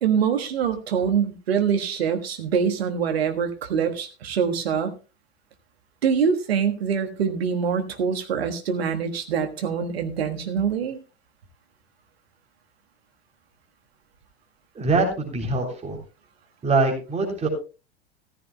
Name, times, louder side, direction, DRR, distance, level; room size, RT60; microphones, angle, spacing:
voice 1, 0.0-4.9 6.0-11.0, right 7 dB, 65° right, 6 dB, 1.5 m, -24 dB
voice 2, 14.8-16.0 16.6-17.5, right 3 dB, 20° right, 1 dB, 3.5 m, -23 dB
15.0 x 14.0 x 2.2 m, 0.32 s
figure-of-eight pair, 85°, 33 cm